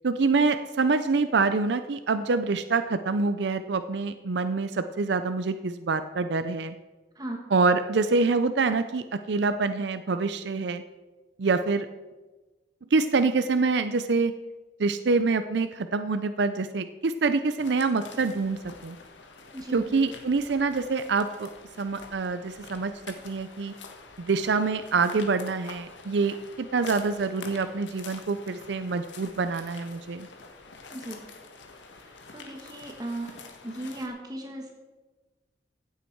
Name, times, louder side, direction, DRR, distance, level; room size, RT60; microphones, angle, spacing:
voice 1, 0.0-6.7 7.5-10.8 11.4-11.9 12.9-14.3 14.8-19.0 19.7-21.5 21.8-23.7 24.2-30.3, right 4 dB, 70° right, 10 dB, 0.5 m, -26 dB
sound 1, 17.6-34.1, left 4 dB, 80° left, 1.5 m, -47 dB
voice 2, 19.5-19.9 30.9-31.2 32.3-33.3 33.6-34.8, right 1 dB, 20° right, 2 dB, 1.3 m, -36 dB
15.5 x 8.2 x 4.6 m, 1.2 s
head